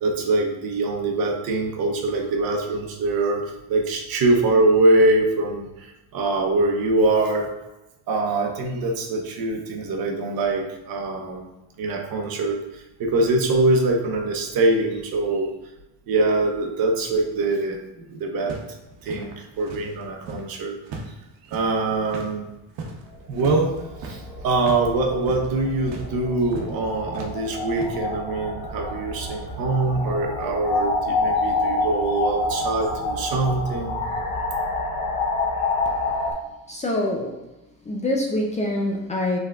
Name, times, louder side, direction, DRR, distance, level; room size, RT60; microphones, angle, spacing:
voice 1, 0.0-7.5 8.1-11.5 11.8-15.5 16.1-18.6 19.0-20.7 21.5-22.5 23.3-23.7 24.0-34.0, right 2 dB, 60° right, 2 dB, 0.9 m, -23 dB
sound 1, 18.5-20.5 20.8-24.9 25.2-25.5 25.9-26.1 26.5-26.7 27.1-27.9, right 3 dB, 85° right, 0.9 m, -38 dB
sound 2, 23.1-36.3, left 3 dB, 80° left, 1.2 m, -28 dB
voice 2, 36.7-37.4 37.9-39.4, left 1 dB, 20° left, -1 dB, 0.4 m, -25 dB
5.6 x 3.5 x 2.4 m, 0.98 s
cardioid pair, 145°, 40 cm